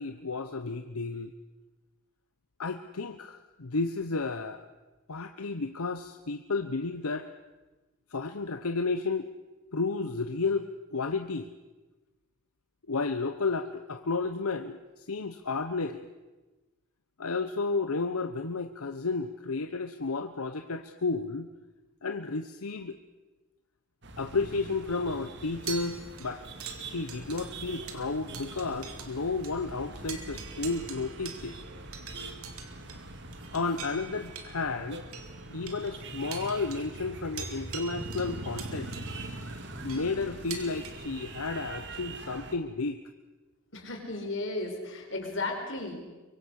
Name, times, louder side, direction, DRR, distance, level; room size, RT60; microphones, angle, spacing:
voice 1, 0.0-1.3 2.6-4.7 5.1-7.3 8.1-9.3 9.7-11.5 12.9-16.1 17.2-21.5 22.0-23.0 24.2-26.5 26.8-31.6 33.5-35.0 35.5-39.0 39.8-43.0, left 3 dB, 80° left, 8 dB, 1.0 m, -32 dB
sound 1, 24.0-42.5, right 2 dB, 55° right, 1.9 m, -43 dB
sound 2, 25.6-29.2 29.4-29.6 30.0-40.9, right 7 dB, 75° right, 2.9 m, -45 dB
voice 2, 43.7-46.0, left 2 dB, 55° left, 3 dB, 4.6 m, -34 dB
24.0 x 24.0 x 6.5 m, 1.2 s
head